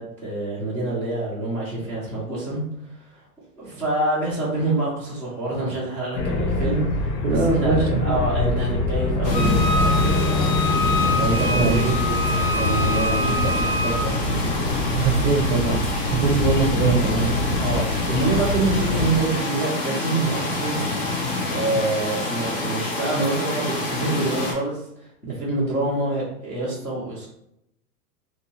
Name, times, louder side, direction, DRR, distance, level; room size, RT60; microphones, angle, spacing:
voice 1, 0.0-2.6 3.1-3.2 3.6-10.1 11.2-14.4 17.6-20.8 21.5-27.3, right 2 dB, 5° left, -13 dB, 0.4 m, -26 dB
sound 1, 6.1-19.2, left 2 dB, 80° left, 0.8 m, -25 dB
voice 2, 7.2-8.2 10.7-12.0 13.1-13.5 14.9-15.8 16.1-17.3, right 4 dB, 40° right, 3 dB, 0.6 m, -23 dB
sound 2, 9.2-24.5, left 2 dB, 65° left, 1.3 m, -28 dB
Wind instrument woodwind instrument, 9.3-14.0, left 1 dB, 45° left, 0.9 m, -26 dB
2.6 x 2.2 x 3.0 m, 0.77 s
hypercardioid pair, 125°, 48 cm